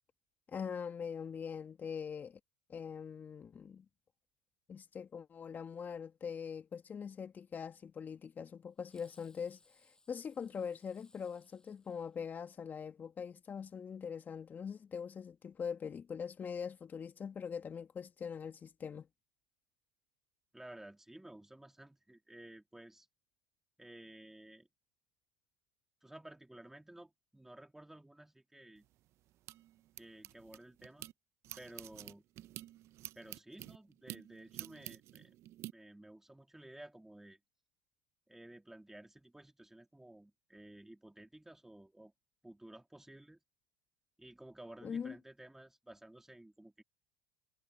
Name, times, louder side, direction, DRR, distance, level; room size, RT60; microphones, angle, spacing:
voice 1, 0.5-2.4 2.7-3.9 4.7-19.1 44.8-45.2, left 6 dB, 30° left, 1.8 m, -43 dB
Fireworks, 8.8-12.7, left 2 dB, 10° left, 6.6 m, -69 dB
voice 2, 20.5-23.1 23.8-24.7 26.0-28.8 30.0-31.1 31.6-32.2 33.1-35.4 35.7-37.4 38.3-42.1 42.4-43.4 44.2-46.8, right 1 dB, 5° right, 3.4 m, -54 dB
sound 1, 28.8-31.1 31.4-35.7, right 14 dB, 55° right, 0.9 m, -49 dB
hypercardioid pair, 80°, 6 cm